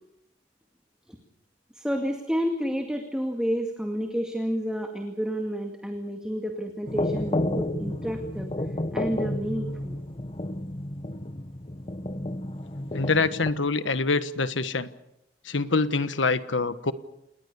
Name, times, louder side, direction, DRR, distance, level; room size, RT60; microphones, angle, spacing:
voice 1, 1.8-8.5 8.9-10.0, equal, 5° right, 3 dB, 2.2 m, -30 dB
sound 1, 6.9-13.5, left 1 dB, 30° left, 1.1 m, -31 dB
voice 2, 12.9-14.9 15.5-16.9, left 3 dB, 75° left, 12 dB, 1.4 m, -25 dB
28.5 x 20.5 x 7.0 m, 0.82 s
head